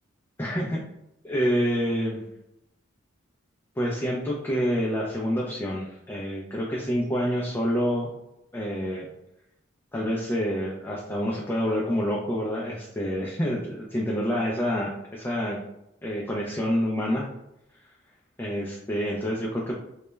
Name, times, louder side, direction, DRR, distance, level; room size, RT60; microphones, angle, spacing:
voice 1, 0.4-0.8 1.2-2.2 3.8-8.1 8.5-9.1 9.9-15.6 16.0-17.3 18.4-19.8, equal, 10° left, -4 dB, 0.3 m, -27 dB
2.2 x 2.1 x 3.0 m, 0.83 s
head